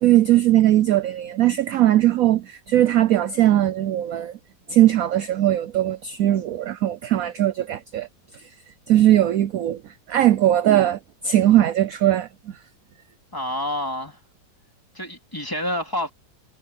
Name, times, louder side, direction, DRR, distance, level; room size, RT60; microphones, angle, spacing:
voice 1, 0.0-4.4 4.7-8.1 8.3-8.5 8.9-12.3, right 13 dB, 65° right, 0.9 m, -19 dB
voice 2, 13.3-14.2 14.9-16.1, left 1 dB, 10° left, 3.3 m, -28 dB
omnidirectional pair, 2.0 m